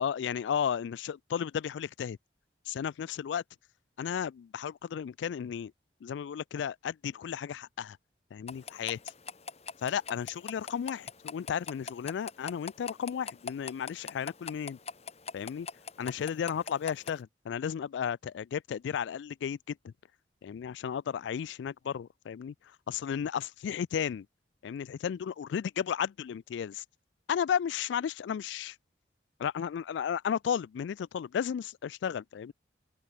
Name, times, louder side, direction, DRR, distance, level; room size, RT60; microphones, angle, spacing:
voice 1, 0.0-2.2 2.7-3.4 4.0-5.7 6.0-8.0 8.3-9.0 9.8-14.8 15.3-15.7 16.0-19.9 20.4-24.3 24.6-26.8 27.3-28.8 29.4-32.5, left 8 dB, 75° left, 0.3 m, -34 dB
sound 1, 8.5-17.2, left 5 dB, 35° left, 1.7 m, -43 dB
open air
head